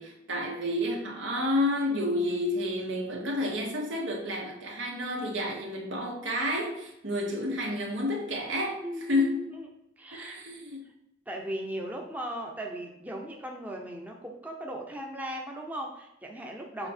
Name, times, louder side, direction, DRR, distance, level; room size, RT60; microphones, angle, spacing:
voice 1, 0.0-8.8 9.1-9.5 10.1-10.9 16.8-16.9, left 1 dB, 80° right, -1 dB, 1.9 m, -30 dB
voice 2, 8.8-9.6 10.0-10.4 11.3-16.9, right 1 dB, 10° right, 0 dB, 0.8 m, -37 dB
7.0 x 4.3 x 4.4 m, 0.84 s
head